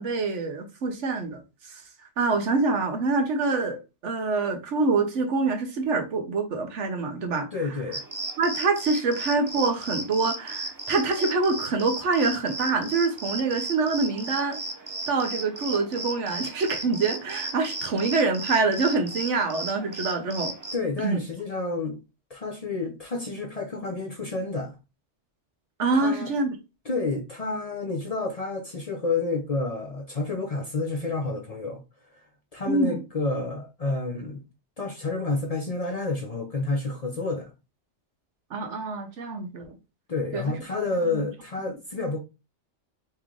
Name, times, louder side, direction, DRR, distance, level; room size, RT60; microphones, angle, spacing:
voice 1, 0.0-1.4 1.7-1.8 2.2-7.5 8.4-14.6 15.1-20.5 21.0-21.2 25.8-26.5 32.7-33.0 38.5-39.8 40.3-40.5 41.1-41.2, right 3 dB, 80° right, 1.2 m, -25 dB
voice 2, 7.5-8.0 20.7-22.0 22.3-24.8 25.9-26.3 26.9-31.8 32.1-32.3 32.5-34.4 34.8-37.5 40.1-42.2, left 3 dB, 45° left, 0.5 m, -29 dB
sound 1, 7.9-20.8, right 2 dB, 30° right, 0.4 m, -35 dB
3.1 x 3.1 x 3.7 m
omnidirectional pair, 1.2 m